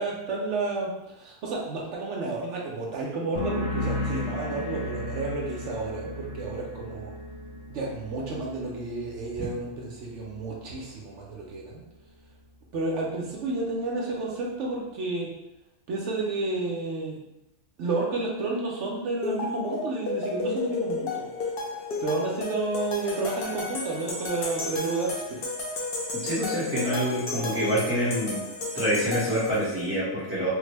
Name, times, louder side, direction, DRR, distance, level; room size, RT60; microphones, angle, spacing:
voice 1, 0.0-7.1 7.7-11.8 12.7-15.3 15.9-17.2 17.8-21.3 22.0-25.4, right 3 dB, 65° right, -2 dB, 0.7 m, -31 dB
sound 1, 3.3-10.8 11.1-11.6, left 1 dB, 55° left, 0.8 m, -35 dB
sound 2, 19.2-29.8, left 3 dB, 80° left, 0.5 m, -33 dB
voice 2, 26.2-28.4 28.7-30.5, equal, 10° right, -11 dB, 0.6 m, -26 dB
3.5 x 2.0 x 3.2 m, 0.89 s
omnidirectional pair, 1.7 m